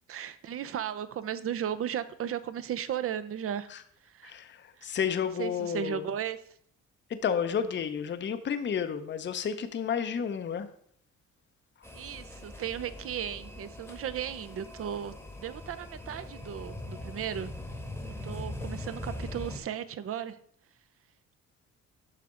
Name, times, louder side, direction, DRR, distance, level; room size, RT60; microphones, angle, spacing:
voice 1, 0.1-3.7 4.0-4.3 4.8-4.9 5.4-6.4 11.9-17.5 18.2-20.4, right 9 dB, 50° right, 14 dB, 0.6 m, -35 dB
voice 2, 4.2-6.1 7.1-10.7, left 7 dB, 40° left, 10 dB, 0.7 m, -31 dB
sound 1, 11.8-19.6, left 1 dB, 5° left, 1.1 m, -41 dB
7.6 x 5.7 x 3.7 m, 0.63 s
cardioid pair, 90°, 30 cm